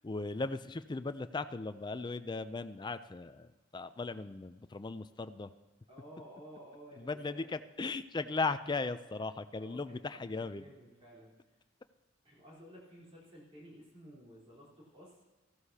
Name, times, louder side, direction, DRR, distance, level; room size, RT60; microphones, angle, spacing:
voice 1, 0.0-5.5 7.0-10.7, left 3 dB, 25° left, 12 dB, 0.4 m, -37 dB
voice 2, 5.9-7.5 9.6-10.0 10.3-11.3 12.2-15.2, equal, 30° right, -6 dB, 4.0 m, -54 dB
14.5 x 12.5 x 2.8 m, 1.2 s
head